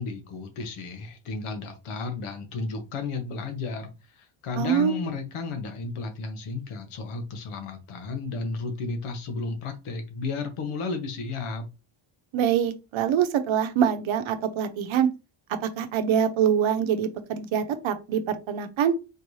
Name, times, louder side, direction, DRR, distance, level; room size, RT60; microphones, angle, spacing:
voice 1, 0.0-11.7, left 4 dB, 85° left, 1.2 m, -33 dB
voice 2, 4.6-4.9 12.3-15.1 15.6-18.9, right 8 dB, 70° right, 0.8 m, -24 dB
4.4 x 2.7 x 3.1 m
cardioid pair, 135°, 49 cm